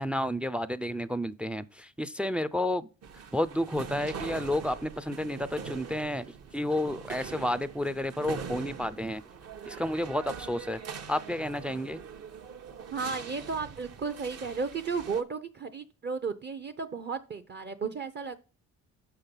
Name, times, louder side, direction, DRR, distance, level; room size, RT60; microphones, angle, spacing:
voice 1, 0.0-2.9 3.3-6.2 6.5-9.2 9.7-10.8 11.1-12.0, left 1 dB, 5° right, 0.3 m, -31 dB
sound 1, 3.0-15.2, right 6 dB, 55° right, 0.9 m, -43 dB
voice 2, 12.9-18.4, right 5 dB, 35° right, 0.6 m, -34 dB
6.4 x 5.7 x 5.3 m
cardioid pair, 90°, 30 cm